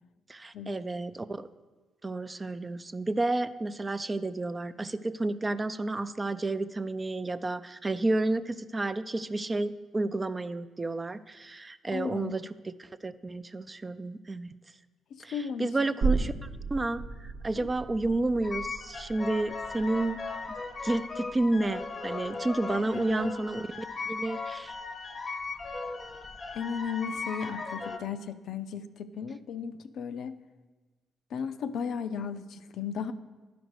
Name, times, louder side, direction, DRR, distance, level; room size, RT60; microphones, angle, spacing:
voice 1, 0.3-1.5 2.0-14.5 15.2-20.2 20.8-23.6 24.1-24.8, right 2 dB, 25° right, 12 dB, 0.4 m, -31 dB
voice 2, 11.9-12.3 15.1-15.7 16.2-16.3 17.6-17.7 22.7-23.3 26.5-30.4 31.3-33.1, left 7 dB, 70° left, 10 dB, 0.4 m, -35 dB
sound 1, 16.0-23.3 23.6-23.7, right 4 dB, 75° right, 1.1 m, -36 dB
sound 2, 18.4-28.0, left 4 dB, 35° left, 0.7 m, -37 dB
11.0 x 5.1 x 6.2 m, 1.3 s
cardioid pair, 90°, 0 cm